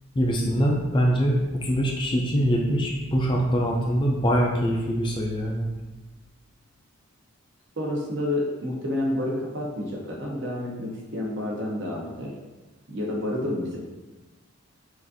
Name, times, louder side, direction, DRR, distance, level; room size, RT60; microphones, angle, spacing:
voice 1, 0.2-5.7, equal, 20° left, -1 dB, 0.4 m, -23 dB
voice 2, 7.8-12.3 12.9-13.8, left 1 dB, 55° right, -2 dB, 0.9 m, -29 dB
6.0 x 2.5 x 2.7 m, 1.2 s
head